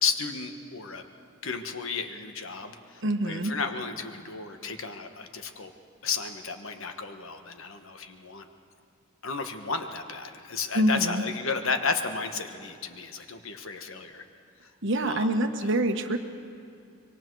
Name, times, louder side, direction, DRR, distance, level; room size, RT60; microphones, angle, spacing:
voice 1, 0.0-1.0 1.4-5.7 6.0-8.5 9.2-14.2 15.1-15.3 15.6-15.7, left 5 dB, 65° left, 6 dB, 1.3 m, -33 dB
voice 2, 3.0-3.5 10.7-11.2 14.8-16.2, right 1 dB, 55° right, 6 dB, 1.2 m, -25 dB
25.0 x 23.0 x 4.7 m, 2.6 s
head